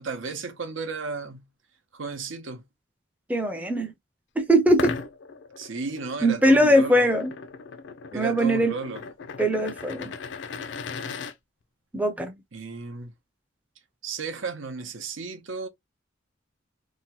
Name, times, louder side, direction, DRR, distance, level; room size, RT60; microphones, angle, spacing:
voice 1, 0.0-1.4 1.9-2.6 5.6-7.1 8.1-9.0 12.5-13.1 14.0-15.7, right 4 dB, 80° right, 0.7 m, -34 dB
voice 2, 3.3-3.9 4.4-4.9 6.2-7.3 8.1-8.7 9.4-10.1 11.9-12.3, equal, 10° right, 0.4 m, -21 dB
sound 1, 4.7-11.3, left 5 dB, 65° left, 0.4 m, -37 dB
2.7 x 2.1 x 2.9 m
head